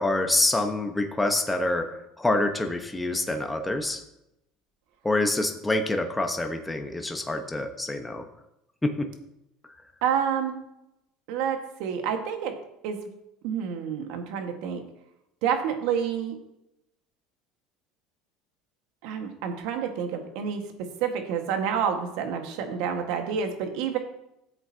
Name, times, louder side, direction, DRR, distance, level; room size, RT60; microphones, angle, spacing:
voice 1, 0.0-4.0 5.0-8.2 8.8-9.1, left 2 dB, 10° left, 4 dB, 1.1 m, -26 dB
voice 2, 10.0-10.6 11.3-12.5 12.8-13.0 13.4-14.8 15.4-16.3 19.0-24.0, right 7 dB, 75° right, 5 dB, 1.6 m, -28 dB
14.0 x 7.8 x 2.9 m, 0.84 s
supercardioid pair, 115°, 0 cm